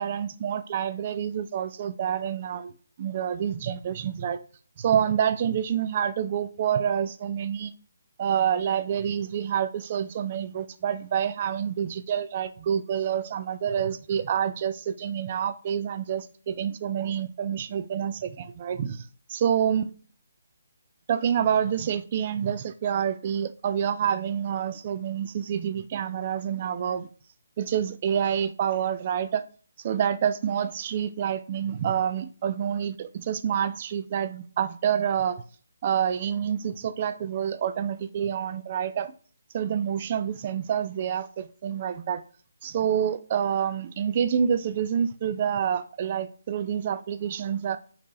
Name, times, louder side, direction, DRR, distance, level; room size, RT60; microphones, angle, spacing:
voice 1, 0.0-2.7 3.0-4.4 4.8-7.7 8.2-19.9 21.1-27.1 27.6-29.5 29.8-35.4 35.8-39.1 39.5-42.2 42.6-47.8, right 8 dB, 35° right, 0.3 m, -27 dB
5.0 x 2.9 x 3.1 m
figure-of-eight pair, 145°, 0 cm